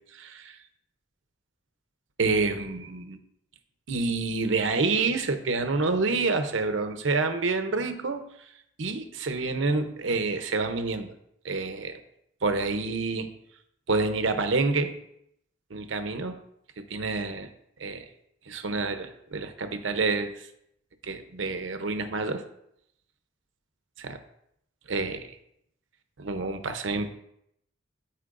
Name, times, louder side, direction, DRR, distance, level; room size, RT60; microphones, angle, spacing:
voice 1, 0.1-0.5 2.2-3.2 3.9-8.2 8.8-11.1 11.4-12.0 12.4-13.3 13.9-14.9 15.7-16.4 16.8-17.5 17.8-18.0 18.5-20.5 21.0-22.4 24.0-24.2 24.9-25.3 26.2-27.1, right 3 dB, 75° right, 8 dB, 0.8 m, -28 dB
13.0 x 4.5 x 2.5 m, 0.75 s
head